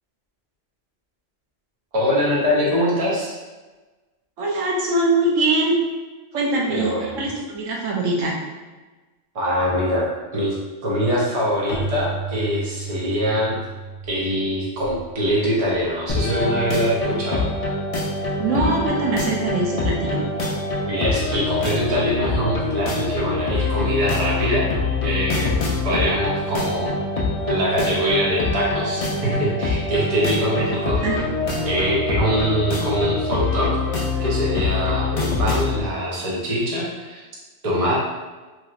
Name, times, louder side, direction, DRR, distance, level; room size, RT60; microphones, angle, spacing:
voice 1, 1.9-3.4 6.7-7.3 9.3-10.1 10.3-10.5 10.8-13.6 14.1-17.5 20.9-24.7 25.0-27.0 27.5-31.0 31.6-33.8 34.2-37.2 37.6-38.0, equal, 35° right, -5 dB, 0.7 m, -23 dB
voice 2, 4.4-5.8 6.3-8.3 18.4-20.2 31.0-31.2, right 2 dB, 85° right, -2 dB, 1.0 m, -22 dB
Keyboard (musical), 11.7-16.2, right 3 dB, 80° left, 0.9 m, -34 dB
sound 1, 16.1-35.8, left 3 dB, 55° left, 0.4 m, -24 dB
3.0 x 2.8 x 2.4 m, 1.2 s
omnidirectional pair, 1.3 m